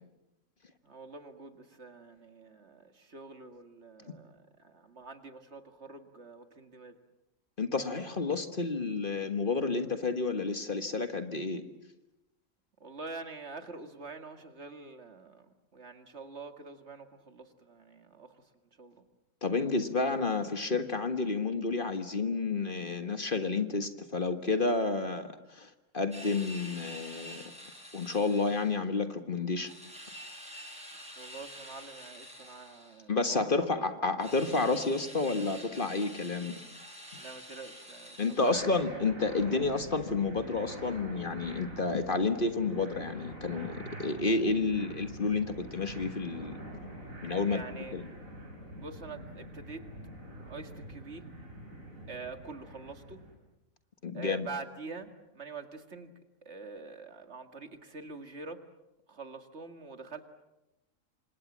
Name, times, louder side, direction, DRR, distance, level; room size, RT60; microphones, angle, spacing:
voice 1, 0.8-7.0 12.8-18.4 18.8-19.0 31.1-33.7 37.2-38.7 47.4-48.0 48.7-49.8 50.5-51.3 52.1-53.2 54.1-56.1 56.4-58.6 59.1-60.2, right 4 dB, 55° right, 7 dB, 2.2 m, -46 dB
voice 2, 7.6-11.6 19.4-27.4 27.9-29.7 33.1-36.6 38.2-46.6 47.2-47.6 47.9-48.0 54.0-54.5, left 3 dB, 40° left, 8 dB, 1.7 m, -30 dB
sound 1, 26.1-28.8 29.6-33.0 34.2-38.8, equal, 5° right, 7.9 m, -48 dB
sound 2, 38.5-53.4, right 1 dB, 80° right, 5.5 m, -45 dB
29.0 x 26.0 x 7.4 m, 0.93 s
omnidirectional pair, 1.4 m